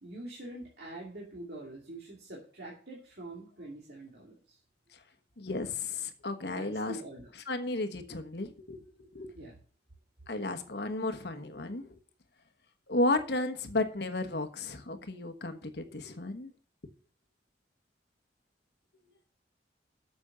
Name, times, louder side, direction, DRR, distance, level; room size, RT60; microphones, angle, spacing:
voice 1, 0.0-4.6 6.4-7.3 9.3-9.6, right 1 dB, 60° right, 2.6 m, -45 dB
voice 2, 5.4-7.0 7.5-9.3 10.3-11.9 12.9-16.5, left 2 dB, 65° left, 1.2 m, -33 dB
8.6 x 6.9 x 6.8 m
head